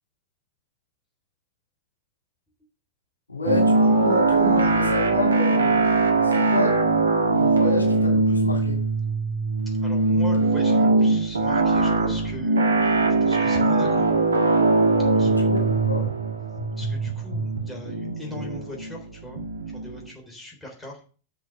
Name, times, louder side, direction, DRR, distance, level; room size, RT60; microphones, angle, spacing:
voice 1, 3.3-5.8 6.2-6.8 7.3-8.8 15.2-16.0, left 4 dB, 80° left, 2 dB, 2.7 m, -29 dB
sound 1, 3.4-20.0, right 3 dB, 75° right, 1.5 m, -21 dB
voice 2, 9.8-12.9 13.2-14.1 15.0-15.5 16.8-19.4 19.7-21.0, left 1 dB, 10° left, 1 dB, 3.8 m, -40 dB
8.4 x 6.4 x 6.4 m, 0.38 s
figure-of-eight pair, 90°, 0 cm